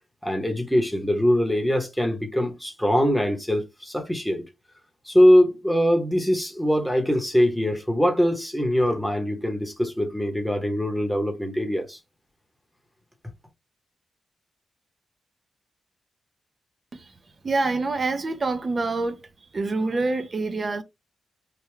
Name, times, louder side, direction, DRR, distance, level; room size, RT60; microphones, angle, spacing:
voice 1, 0.2-4.4 5.1-12.0, equal, ahead, 0.9 m, -22 dB
voice 2, 17.4-19.2 19.5-20.8, right 3 dB, 35° right, 0.5 m, -26 dB
3.3 x 2.2 x 3.1 m
wide cardioid pair, 140°, 0 cm